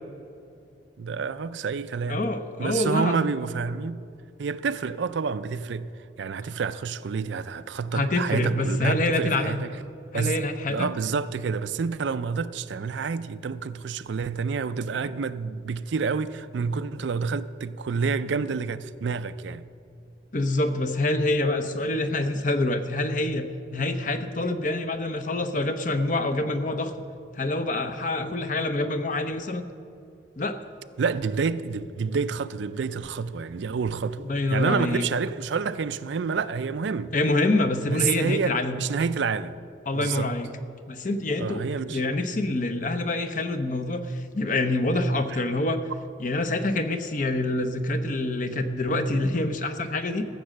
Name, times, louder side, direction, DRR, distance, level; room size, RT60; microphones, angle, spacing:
voice 1, 1.0-2.2 2.6-4.0 4.4-5.9 6.2-9.7 10.1-10.3 10.7-19.6 31.0-37.1 37.9-39.5 39.9-40.3 41.4-42.0, right 5 dB, 75° right, 0.4 m, -28 dB
voice 2, 2.1-3.3 7.9-9.6 10.1-10.9 20.3-26.9 27.3-29.6 30.4-30.6 34.3-35.0 37.1-38.8 39.9-40.5 40.9-41.6 41.9-45.8 46.2-50.2, left 2 dB, 45° left, 0.7 m, -26 dB
14.5 x 7.5 x 6.4 m
head